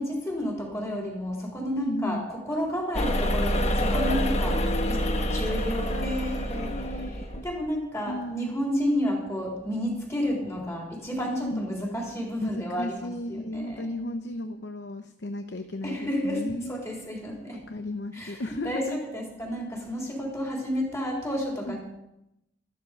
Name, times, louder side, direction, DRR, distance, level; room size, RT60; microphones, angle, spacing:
voice 1, 0.0-4.6 4.9-6.7 7.4-13.9 15.8-17.6 18.1-21.8, equal, 15° left, -2 dB, 3.7 m, -31 dB
voice 2, 1.8-2.3 4.5-7.1 7.4-7.5 8.1-8.6 11.4-11.6 12.4-16.8 17.5-19.0 21.7-21.8, left 1 dB, 70° left, 8 dB, 0.8 m, -35 dB
sound 1, 2.9-7.5, equal, 35° left, 1.2 m, -27 dB
13.5 x 12.0 x 5.2 m, 0.86 s
head